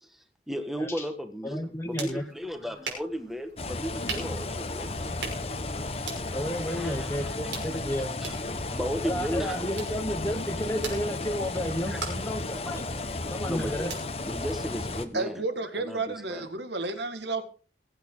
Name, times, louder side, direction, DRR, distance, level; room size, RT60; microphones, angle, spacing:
voice 1, 0.0-5.0 6.7-7.6 8.2-8.4 8.7-9.7 11.9-12.0 13.5-13.9 14.2-15.4 15.7-16.5, equal, ahead, 1.5 m, -35 dB
voice 2, 1.4-2.2 6.3-8.1 9.0-12.9 13.3-13.9, equal, 15° left, 1.2 m, -32 dB
sound 1, 1.5-15.2, right 4 dB, 85° right, 5.9 m, -43 dB
sound 2, 3.6-15.1, left 2 dB, 35° left, 1.2 m, -34 dB
voice 3, 15.1-17.4, right 3 dB, 70° right, 1.9 m, -31 dB
22.0 x 8.6 x 3.9 m
head